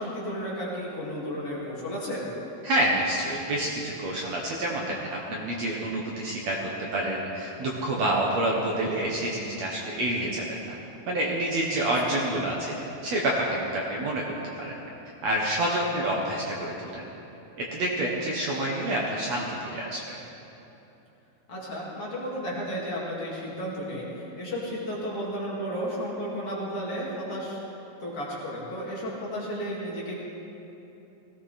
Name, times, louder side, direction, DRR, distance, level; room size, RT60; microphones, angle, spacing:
voice 1, 0.0-2.2 12.2-12.4 21.5-27.6 28.0-30.2, equal, 45° left, -5 dB, 3.0 m, -33 dB
voice 2, 2.6-10.8 11.1-12.7 13.0-14.2 14.6-14.7 15.2-17.0 17.7-19.5 19.7-20.2, right 1 dB, 60° right, -2 dB, 2.1 m, -28 dB
18.5 x 16.5 x 4.2 m, 2.9 s
omnidirectional pair, 4.1 m